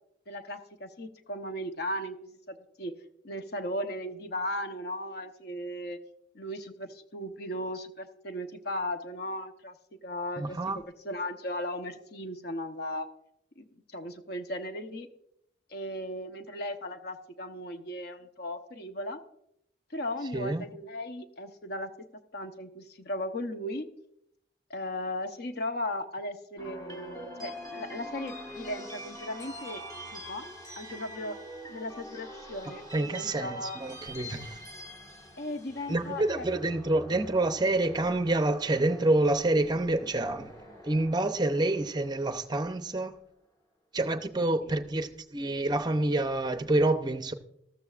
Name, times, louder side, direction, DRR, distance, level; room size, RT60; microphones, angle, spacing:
voice 1, 0.3-2.9 3.2-6.0 6.3-13.1 13.6-15.1 15.7-19.2 19.9-22.1 22.3-23.9 24.7-29.8 30.1-30.4 30.8-31.4 31.7-33.8 35.4-36.5 44.7-44.8, left 1 dB, 55° left, 0.9 m, -37 dB
voice 2, 10.4-10.8 20.3-20.7 32.9-34.6 35.9-40.5 40.8-43.1 43.9-47.3, right 2 dB, 20° right, 0.6 m, -27 dB
sound 1, 26.6-42.8, equal, 20° left, 1.5 m, -45 dB
14.0 x 13.5 x 2.4 m
head